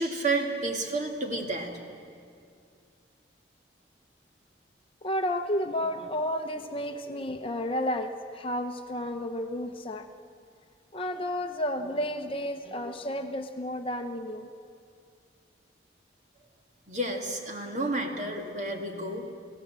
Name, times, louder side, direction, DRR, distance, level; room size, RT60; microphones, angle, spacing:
voice 1, 0.0-1.7 16.9-19.2, right 2 dB, 40° right, 2 dB, 2.3 m, -30 dB
voice 2, 5.0-10.1 10.9-14.5, left 1 dB, 30° left, 6 dB, 0.8 m, -32 dB
29.0 x 17.0 x 7.6 m, 2.4 s
head